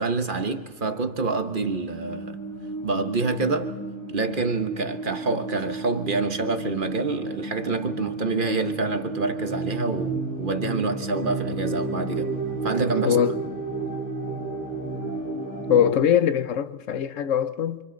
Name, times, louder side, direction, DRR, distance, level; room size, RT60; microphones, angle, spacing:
voice 1, 0.0-2.4 2.8-3.8 4.1-12.3 12.6-13.2, right 3 dB, 45° right, 1.2 m, -27 dB
sound 1, 1.7-16.0, right 2 dB, 15° left, 3.3 m, -32 dB
voice 2, 13.0-13.4 15.7-17.8, left 9 dB, 80° left, 1.1 m, -22 dB
29.0 x 26.0 x 3.9 m
omnidirectional pair, 1.3 m